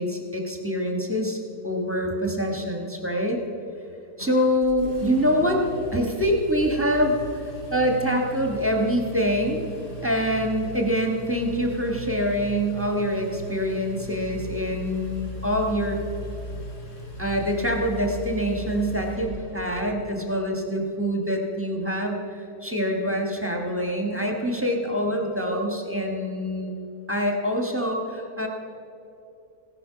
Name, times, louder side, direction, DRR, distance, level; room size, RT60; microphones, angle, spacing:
voice 1, 0.0-1.4 1.6-3.4 4.2-5.6 5.9-7.2 7.7-9.7 10.0-16.0 17.2-26.7 27.1-28.5, equal, 10° right, 1 dB, 1.1 m, -25 dB
Engine, 4.2-19.9, equal, 50° left, 3.5 m, -38 dB
15.5 x 11.0 x 5.7 m, 2.7 s
omnidirectional pair, 1.8 m